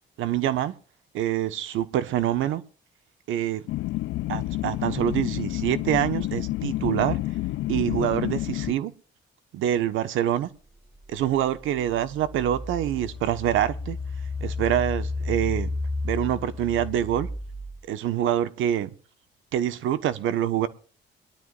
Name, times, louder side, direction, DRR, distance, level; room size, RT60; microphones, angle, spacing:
voice 1, 0.2-0.7 1.1-2.6 3.3-3.6 4.3-7.2 7.7-8.9 9.5-10.5 11.1-14.0 14.4-15.7 16.0-17.3 17.9-18.9 19.5-20.7, right 11 dB, 85° right, 1.3 m, -25 dB
sound 1, 3.7-8.7, left 17 dB, 85° left, 0.5 m, -29 dB
Engine, 11.1-11.2 11.8-17.8, left 3 dB, 5° right, 6.4 m, -32 dB
23.0 x 12.5 x 2.5 m
cardioid pair, 90°, 20 cm